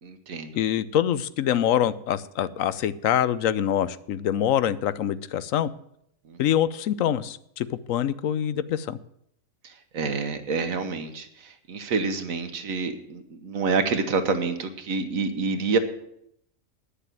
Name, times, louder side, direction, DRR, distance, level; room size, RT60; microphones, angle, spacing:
voice 1, 0.0-0.5 6.3-6.4 9.9-15.8, right 4 dB, 85° right, 8 dB, 1.6 m, -27 dB
voice 2, 0.6-5.7 6.4-9.0, left 10 dB, 80° left, 15 dB, 1.0 m, -25 dB
9.8 x 6.7 x 9.0 m, 0.74 s
omnidirectional pair, 1.4 m